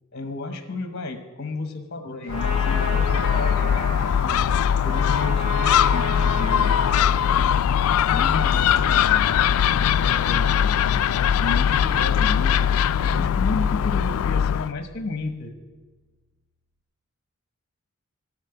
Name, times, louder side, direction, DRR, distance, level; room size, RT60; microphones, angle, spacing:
voice 1, 0.1-4.4 4.8-7.5 8.1-9.3 9.7-11.1 11.4-12.7 13.0-15.5, left 2 dB, 50° left, 8 dB, 1.0 m, -33 dB
Trumpet, 2.2-7.3, equal, 35° right, 4.6 m, -33 dB
Gull seagull, 2.3-14.7, left 9 dB, 85° left, 0.3 m, -21 dB
sound 1, 15.4-16.1, equal, 85° right, 0.7 m, -40 dB
13.0 x 6.3 x 7.8 m, 1.3 s
head